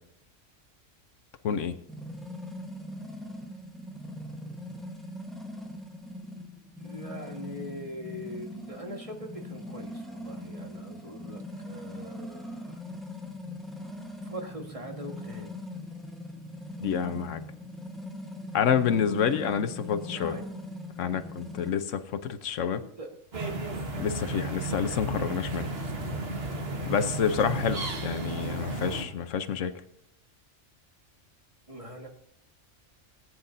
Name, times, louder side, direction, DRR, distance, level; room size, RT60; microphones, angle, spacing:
voice 1, 1.4-1.8 16.8-17.4 18.5-20.4 21.0-22.8 23.9-25.7 26.9-29.7, left 7 dB, 85° left, 11 dB, 1.2 m, -28 dB
sound 1, 1.9-21.7, left 1 dB, ahead, 1.1 m, -41 dB
voice 2, 6.8-12.8 14.2-15.5 20.1-20.5 23.0-23.2 31.7-32.1, equal, 30° right, 2 dB, 1.7 m, -42 dB
sound 2, 23.3-29.0, right 2 dB, 55° right, 1.7 m, -33 dB
18.0 x 9.7 x 2.7 m, 0.74 s
omnidirectional pair, 1.3 m